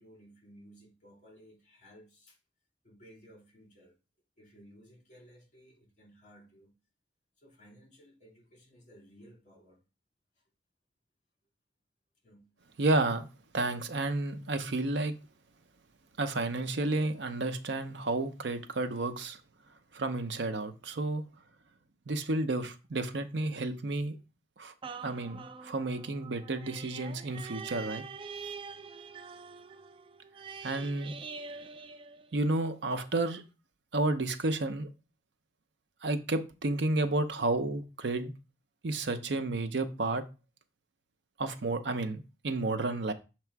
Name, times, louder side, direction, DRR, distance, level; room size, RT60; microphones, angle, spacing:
voice 1, 0.0-2.4 2.8-3.9 4.4-6.7 7.4-9.8 12.2-12.5, equal, 45° left, 2.4 m, -57 dB
voice 2, 12.8-13.3 13.5-15.1 16.2-19.4 19.9-21.2 22.1-24.2 24.6-24.7 25.0-28.0 30.6-31.1 32.3-33.4 33.9-34.9 36.0-38.3 38.8-40.2 41.4-43.1, right 2 dB, 80° right, 0.7 m, -31 dB
sound 1, 24.8-32.7 33.2-33.3, right 5 dB, 30° right, 0.3 m, -45 dB
6.7 x 3.0 x 4.6 m
head